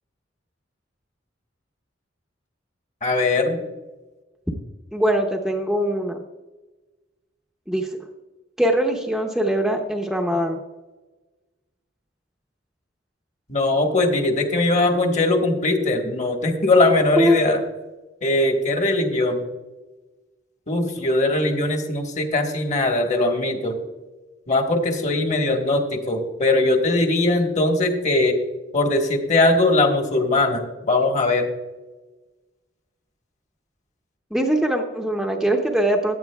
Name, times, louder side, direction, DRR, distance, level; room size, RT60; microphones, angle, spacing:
voice 1, 3.0-3.6 13.5-17.6 18.2-19.4 20.7-23.7 24.5-28.3 28.7-30.6 30.9-31.5, left 2 dB, 40° left, 3 dB, 1.4 m, -20 dB
voice 2, 4.9-6.2 7.7-7.9 8.6-10.6 17.2-17.4 34.3-36.2, right 1 dB, ahead, 2 dB, 0.7 m, -22 dB
15.0 x 10.0 x 2.3 m, 1.2 s
head